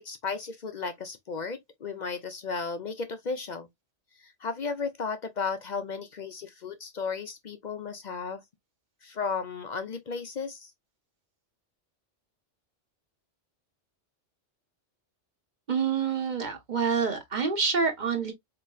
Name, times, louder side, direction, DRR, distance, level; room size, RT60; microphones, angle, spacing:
voice 1, 0.0-3.7 4.2-8.4 9.0-10.7, left 5 dB, 50° left, 0.5 m, -34 dB
voice 2, 15.7-18.3, right 5 dB, 40° right, 1.1 m, -27 dB
4.3 x 3.0 x 2.3 m
omnidirectional pair, 1.2 m